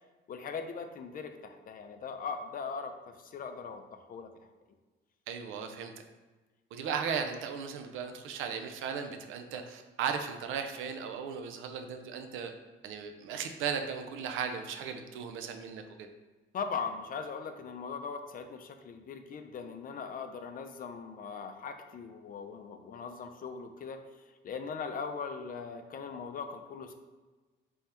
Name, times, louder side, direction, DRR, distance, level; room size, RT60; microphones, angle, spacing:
voice 1, 0.3-4.5 16.5-24.1 24.4-26.9, left 5 dB, 45° left, 7 dB, 0.4 m, -40 dB
voice 2, 5.3-5.9 6.7-12.5 12.8-16.1, right 6 dB, 85° right, 6 dB, 0.4 m, -36 dB
3.4 x 2.8 x 3.3 m, 1.2 s
cardioid pair, 90°, 20 cm